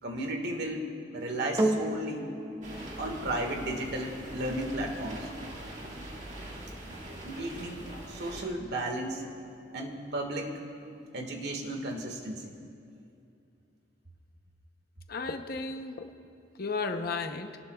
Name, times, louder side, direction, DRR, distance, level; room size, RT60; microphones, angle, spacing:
voice 1, 0.0-2.3 3.0-5.3 7.2-9.3 9.7-10.6 11.1-12.6, right 1 dB, 60° right, 3 dB, 1.7 m, -34 dB
sound 1, 1.6-10.1 10.9-11.0, right 1 dB, 20° right, 0.8 m, -37 dB
sound 2, 2.6-8.4, right 1 dB, 40° right, 1.9 m, -43 dB
voice 2, 15.1-16.1 16.6-17.6, left 4 dB, 55° left, 6 dB, 0.8 m, -34 dB
25.5 x 18.5 x 2.3 m, 2.6 s
head